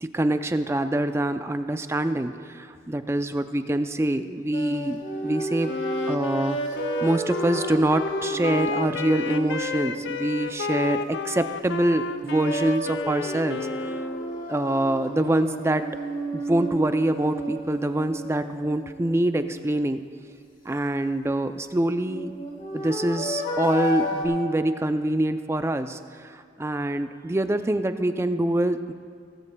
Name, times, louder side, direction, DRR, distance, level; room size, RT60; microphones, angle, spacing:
voice 1, 0.0-5.8 6.1-6.6 7.0-14.0 14.5-15.9 16.3-20.0 20.7-22.3 22.7-28.9, right 1 dB, 15° right, 9 dB, 0.4 m, -25 dB
sound 1, 4.5-11.6 12.1-19.9 21.6-24.3, right 1 dB, 45° left, 2.1 m, -33 dB
Wind instrument woodwind instrument, 5.6-14.5, left 4 dB, 70° left, 0.5 m, -32 dB
18.0 x 16.0 x 2.3 m, 2.1 s
head